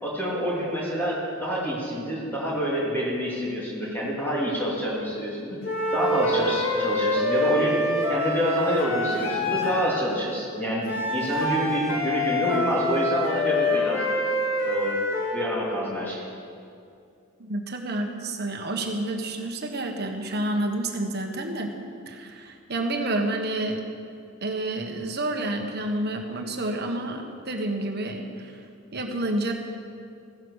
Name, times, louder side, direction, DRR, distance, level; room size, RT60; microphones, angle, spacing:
voice 1, 0.0-5.6 5.9-7.7 8.1-14.1 14.6-14.9 15.3-16.3, equal, 10° left, -6 dB, 2.6 m, -27 dB
sound 1, 5.6-9.9 10.8-15.5, left 1 dB, 60° left, 2.3 m, -26 dB
voice 2, 17.4-21.7 22.1-23.8 24.4-28.6 28.9-29.5, right 1 dB, 45° right, 3 dB, 1.4 m, -29 dB
15.5 x 11.0 x 6.5 m, 2.5 s
head